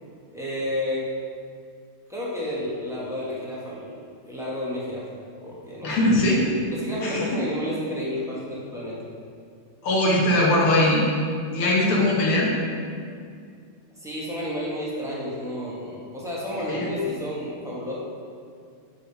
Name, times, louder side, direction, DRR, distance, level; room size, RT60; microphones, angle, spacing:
voice 1, 0.3-1.1 2.1-3.9 4.2-5.1 5.4-6.0 6.7-9.0 14.0-18.0, left 1 dB, 5° right, -7 dB, 0.4 m, -31 dB
voice 2, 5.8-6.4 7.0-7.3 9.8-11.0 11.5-12.5 16.7-16.9, left 1 dB, 80° left, -4 dB, 2.1 m, -20 dB
7.4 x 3.5 x 5.6 m, 2.3 s
omnidirectional pair, 2.4 m